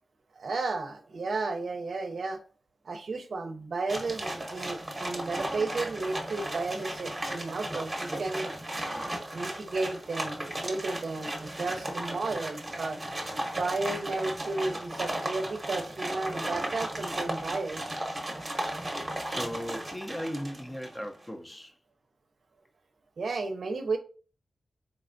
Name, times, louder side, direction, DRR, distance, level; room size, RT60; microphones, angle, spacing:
voice 1, 0.4-2.4 2.8-8.8 9.3-13.0 13.4-17.8 23.2-24.0, right 3 dB, 60° right, 0.6 m, -33 dB
sound 1, 3.9-21.1, right 1 dB, 20° right, 0.8 m, -35 dB
voice 2, 19.2-21.7, equal, 15° left, 0.4 m, -37 dB
4.1 x 3.3 x 2.5 m
wide cardioid pair, 125°, 0 cm